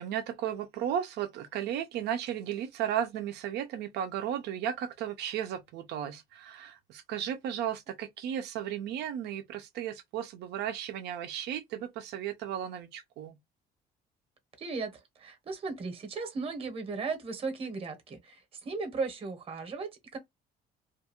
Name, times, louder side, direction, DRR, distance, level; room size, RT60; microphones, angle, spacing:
voice 1, 0.0-13.4, right 10 dB, 80° right, 0.6 m, -35 dB
voice 2, 14.6-20.2, right 4 dB, 35° right, 1.0 m, -36 dB
2.5 x 2.3 x 2.9 m
cardioid pair, 110°, 17 cm